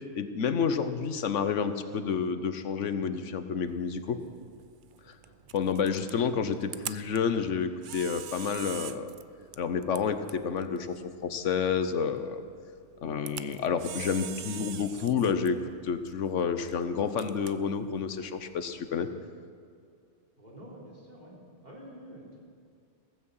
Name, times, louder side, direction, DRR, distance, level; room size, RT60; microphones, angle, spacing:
voice 1, 0.1-4.2 5.1-5.2 5.5-9.1 9.6-12.4 13.0-15.6 15.8-19.1, left 6 dB, 80° left, 10 dB, 1.2 m, -29 dB
Camera, 3.6-19.1, right 9 dB, 60° right, 0.6 m, -46 dB
voice 2, 5.0-5.4 13.1-13.8 20.4-22.4, equal, 35° right, -5 dB, 3.8 m, -50 dB
16.0 x 15.5 x 5.6 m, 2.3 s
omnidirectional pair, 1.2 m